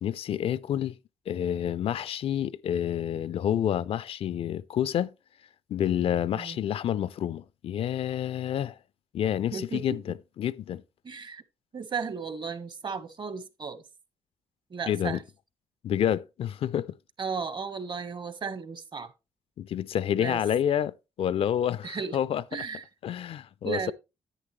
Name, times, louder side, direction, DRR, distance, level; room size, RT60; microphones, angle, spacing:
voice 1, 0.0-1.0 1.3-5.1 5.7-8.8 9.1-10.8 14.9-15.2 15.8-17.0 19.6-22.6 23.0-23.9, left 10 dB, 60° left, 0.5 m, -29 dB
voice 2, 9.5-10.0 11.0-11.4 11.7-13.8 14.7-15.2 17.2-19.1 20.2-20.4 21.8-22.2 22.5-22.8 23.6-23.9, right 5 dB, 45° right, 1.3 m, -35 dB
9.9 x 9.1 x 3.1 m
supercardioid pair, 70°, 11 cm